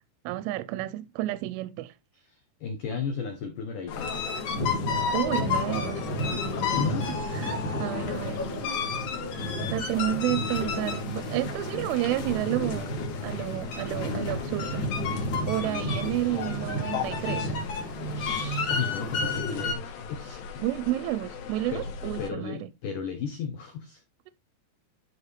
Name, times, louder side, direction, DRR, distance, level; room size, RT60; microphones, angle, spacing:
voice 1, 0.3-1.9 5.1-6.1 7.3-8.7 9.7-13.0 13.2-14.8 15.5-17.5 17.8-18.0 20.6-22.7, right 15 dB, 85° right, 3.0 m, -31 dB
voice 2, 2.2-4.3 6.6-7.2 14.0-14.1 15.5-15.9 18.1-20.4 21.7-21.8 22.2-24.0, left 6 dB, 90° left, 1.8 m, -35 dB
sound 1, 3.9-22.3, left 6 dB, 65° left, 3.5 m, -40 dB
sound 2, 3.9-19.7, left 3 dB, 45° left, 3.4 m, -30 dB
12.0 x 4.5 x 3.3 m
omnidirectional pair, 5.8 m